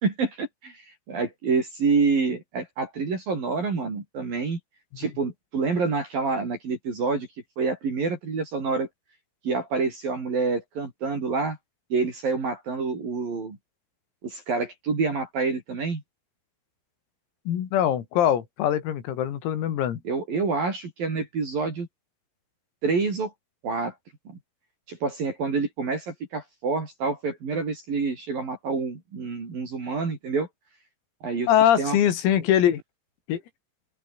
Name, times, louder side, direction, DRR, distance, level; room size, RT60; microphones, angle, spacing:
voice 1, 0.0-4.6 5.0-7.3 7.6-8.9 9.4-11.6 11.9-13.6 14.2-16.0 20.0-21.9 22.8-23.3 23.6-23.9 24.9-30.5 31.2-31.5 31.8-32.0, right 4 dB, 45° right, 6.7 m, -27 dB
voice 2, 17.5-20.0 31.5-32.8 33.3-33.4, left 10 dB, 90° left, 5.6 m, -22 dB
open air
omnidirectional pair, 5.9 m